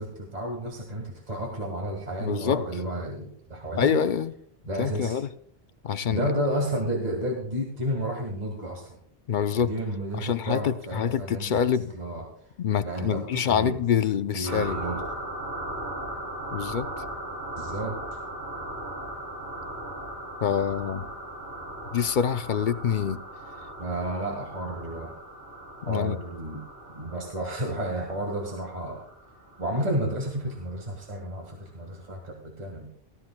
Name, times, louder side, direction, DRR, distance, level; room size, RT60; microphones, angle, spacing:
voice 1, 0.0-3.9 4.7-5.2 6.1-9.0 9.5-11.7 11.9-12.2 12.8-13.8 14.3-15.0 17.6-18.0 23.8-25.1 25.9-26.6 26.9-29.0 29.6-32.9, right 1 dB, 40° right, 0 dB, 1.9 m, -31 dB
voice 2, 2.2-2.6 3.7-4.3 4.8-5.3 5.8-6.3 9.3-9.7 10.2-11.9 12.6-14.8 16.5-16.9 20.4-21.1 21.9-23.2 25.8-26.2, left 8 dB, 55° left, 11 dB, 0.6 m, -26 dB
sound 1, 14.4-30.7, right 1 dB, 65° right, 4.0 m, -38 dB
18.0 x 13.0 x 2.2 m, 0.64 s
omnidirectional pair, 1.1 m